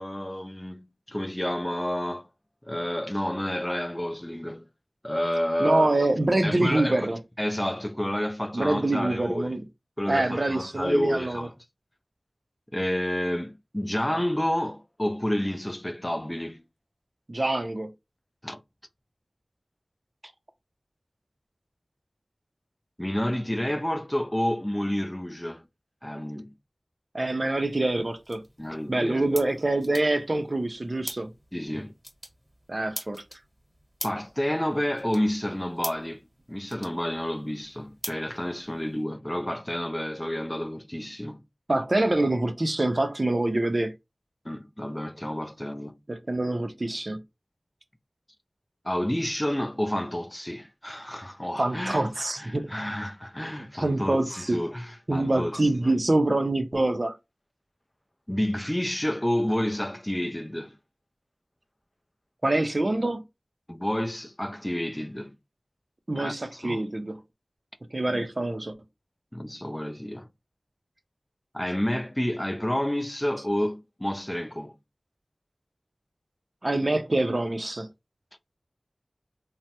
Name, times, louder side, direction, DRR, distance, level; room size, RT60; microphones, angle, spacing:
voice 1, 0.0-2.3 2.7-4.7 5.0-6.0 6.4-7.1 7.4-9.5 10.0-11.5 12.7-16.6 18.4-18.6 23.0-25.6 26.0-26.5 28.6-29.4 31.5-31.9 34.0-41.4 44.4-46.0 48.8-52.1 52.4-55.9 58.3-60.8 63.7-65.3 66.2-66.9 68.1-68.3 69.3-70.3 71.5-74.8, equal, 15° left, 0.3 m, -30 dB
voice 2, 5.6-7.2 8.5-9.6 10.1-11.5 17.3-17.9 27.1-28.4 28.9-31.3 32.7-33.2 41.7-43.9 46.1-47.2 51.6-52.9 53.6-54.6 55.1-57.2 62.4-63.2 66.1-67.2 67.9-68.7 76.6-77.9, right 2 dB, 50° right, 0.5 m, -25 dB
sound 1, 27.5-39.0, equal, 20° right, 1.0 m, -44 dB
3.3 x 2.0 x 2.7 m
wide cardioid pair, 45°, 0 cm